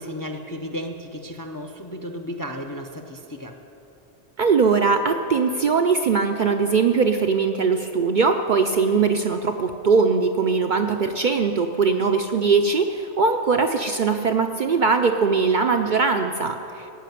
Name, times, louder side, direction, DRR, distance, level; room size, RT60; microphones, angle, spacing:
voice 1, 0.0-3.6, equal, 25° left, 5 dB, 0.4 m, -34 dB
voice 2, 4.4-16.9, right 5 dB, 55° right, 5 dB, 0.6 m, -21 dB
15.0 x 5.8 x 9.2 m, 2.9 s
omnidirectional pair, 1.2 m